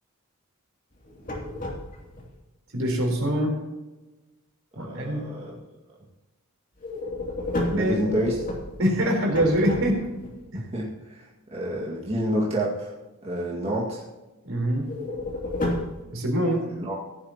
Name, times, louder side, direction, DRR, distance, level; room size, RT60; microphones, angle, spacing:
sound 1, 0.9-2.3 6.8-10.3 14.8-16.0, left 1 dB, 40° left, 2.7 m, -32 dB
voice 1, 2.7-3.6 4.8-5.2 7.7-7.9 8.8-10.0 10.5-10.6 14.4-14.9 16.1-16.7, equal, 65° right, 1 dB, 3.9 m, -24 dB
voice 2, 4.8-5.6 7.7-8.4 10.5-12.9 13.2-14.0 16.8-16.9, right 1 dB, 25° right, -4 dB, 2.0 m, -29 dB
15.5 x 11.5 x 2.9 m, 1.1 s
head